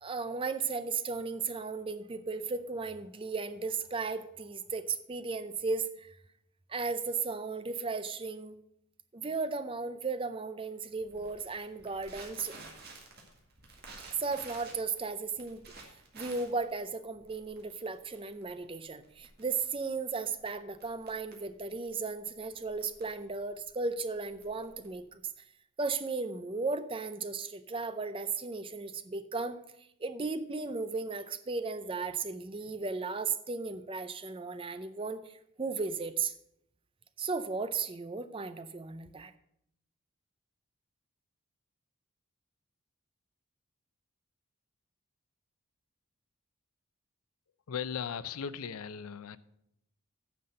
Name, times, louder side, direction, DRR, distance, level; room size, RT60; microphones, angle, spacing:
voice 1, 0.0-6.2 6.7-8.5 9.1-12.5 14.2-15.6 16.1-25.2 25.8-29.6 30.0-36.3 37.2-39.3, right 4 dB, 25° right, 11 dB, 0.5 m, -35 dB
Crackle, 11.0-25.2, right 3 dB, 45° right, 2.0 m, -53 dB
voice 2, 47.7-49.4, left 7 dB, 85° left, 16 dB, 0.5 m, -37 dB
9.4 x 5.8 x 6.5 m, 0.76 s
head